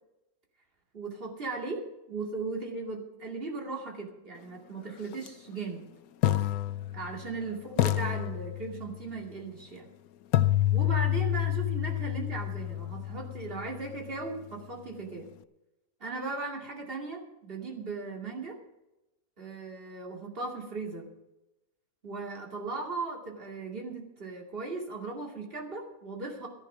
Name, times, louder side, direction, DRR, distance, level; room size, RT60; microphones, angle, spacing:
voice 1, 0.9-1.8 2.1-5.9 6.9-9.9 10.7-15.3 16.0-18.5 19.4-21.1 22.0-26.5, right 3 dB, 40° right, -1 dB, 2.6 m, -37 dB
sound 1, 5.1-5.3 6.2-7.4 7.8-9.0 10.3-14.3, left 14 dB, 75° left, 1.0 m, -29 dB
13.5 x 11.0 x 5.6 m, 0.95 s
omnidirectional pair, 1.6 m